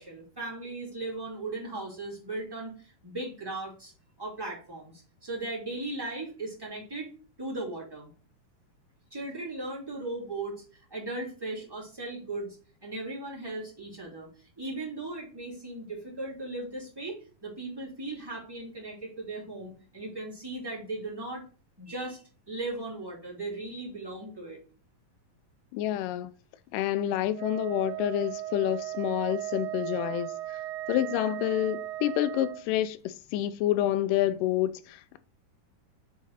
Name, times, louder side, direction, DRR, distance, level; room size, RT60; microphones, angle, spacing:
voice 1, 0.0-3.9 4.2-7.1 7.4-8.1 9.1-21.4 21.8-24.6, right 2 dB, 10° right, 1.9 m, -37 dB
voice 2, 25.7-26.3 26.7-30.4 30.9-35.2, left 13 dB, 90° left, 2.2 m, -28 dB
Wind instrument woodwind instrument, 27.3-32.7, right 14 dB, 90° right, 1.6 m, -36 dB
7.2 x 3.9 x 4.0 m
omnidirectional pair, 3.7 m